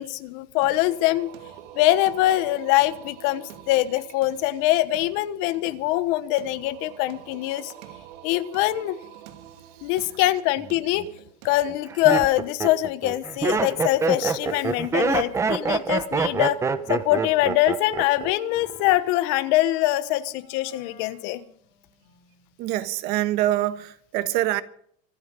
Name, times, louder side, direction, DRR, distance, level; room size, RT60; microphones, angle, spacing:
voice 1, 0.0-1.3 1.7-7.7 8.2-9.0 9.8-11.1 11.4-16.6 16.9-21.4, left 15 dB, 60° left, 1.2 m, -23 dB
Singing, 0.6-12.2, right 11 dB, 85° right, 2.6 m, -46 dB
Laughter, 10.6-11.1 11.7-18.3 18.6-19.1, right 4 dB, 15° right, 0.9 m, -25 dB
Wind instrument woodwind instrument, 15.9-22.5, left 6 dB, 80° left, 3.4 m, -50 dB
voice 2, 22.6-24.6, right 14 dB, 50° right, 1.4 m, -25 dB
25.5 x 9.4 x 5.3 m
cardioid pair, 165°, 20 cm